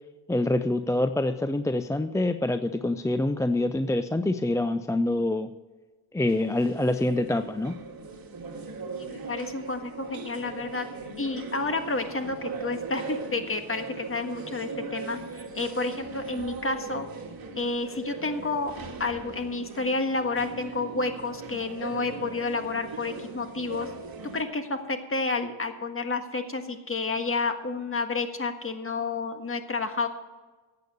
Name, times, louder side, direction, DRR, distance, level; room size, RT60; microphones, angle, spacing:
voice 1, 0.3-5.5 6.1-7.8, left 1 dB, 5° left, 10 dB, 0.4 m, -26 dB
sound 1, 6.3-24.4, right 4 dB, 45° right, 2.1 m, -39 dB
voice 2, 9.1-10.9 11.2-17.0 17.6-18.7 19.0-23.9 24.3-30.1, left 3 dB, 25° left, 7 dB, 1.6 m, -30 dB
13.0 x 8.6 x 6.8 m, 1.3 s
cardioid pair, 80°, 48 cm